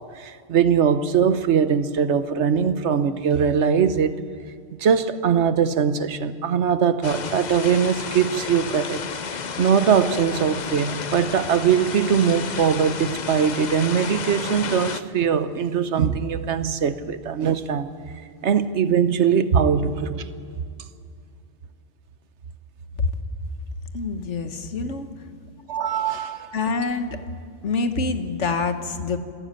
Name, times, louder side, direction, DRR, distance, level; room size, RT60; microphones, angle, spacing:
voice 1, 0.0-4.1 4.8-17.9 18.4-20.3 25.7-26.6, right 7 dB, 75° right, 1.2 m, -21 dB
sound 1, 7.0-15.0, left 6 dB, 45° left, 0.8 m, -32 dB
voice 2, 23.9-25.1 26.5-27.2 27.6-29.2, left 4 dB, 80° left, 1.7 m, -26 dB
26.5 x 13.0 x 8.8 m
omnidirectional pair, 1.2 m